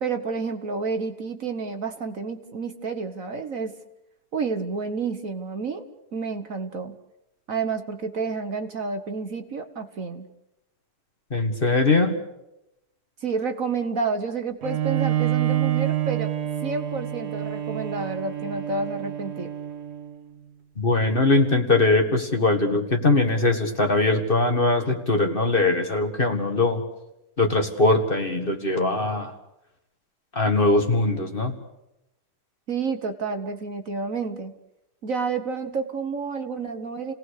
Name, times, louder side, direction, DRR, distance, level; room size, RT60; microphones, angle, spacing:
voice 1, 0.0-3.7 4.3-5.9 6.1-6.9 7.5-10.3 13.2-16.3 16.6-19.5 32.7-34.5 35.0-37.1, right 4 dB, 55° right, 7 dB, 1.6 m, -29 dB
voice 2, 11.3-12.2 20.8-26.8 27.4-29.3 30.3-31.5, left 2 dB, 30° left, 4 dB, 2.0 m, -21 dB
Bowed string instrument, 14.6-20.3, right 12 dB, 70° right, 1.6 m, -27 dB
30.0 x 18.5 x 6.6 m, 0.89 s
omnidirectional pair, 1.8 m